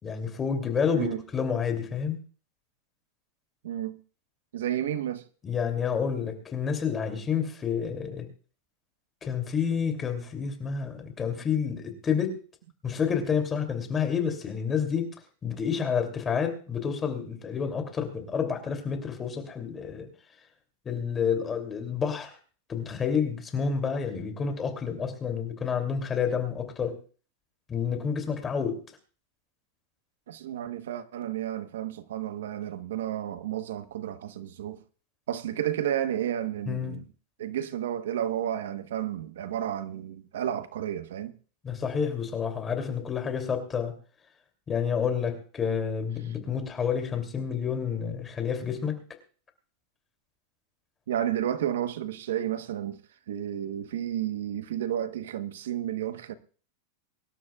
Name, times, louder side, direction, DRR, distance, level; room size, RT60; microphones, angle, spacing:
voice 1, 0.0-2.2 5.4-8.3 9.2-12.4 12.8-15.1 15.4-20.1 20.8-22.3 22.7-27.0 27.7-28.8 36.7-37.0 41.6-43.9 44.7-48.9, left 6 dB, 20° left, 2.8 m, -29 dB
voice 2, 3.6-4.0 4.5-5.2 30.3-34.8 35.3-37.1 37.4-41.3 51.1-53.0 53.3-56.3, right 11 dB, 90° right, 1.1 m, -31 dB
24.0 x 12.5 x 2.4 m
supercardioid pair, 150°, 0 cm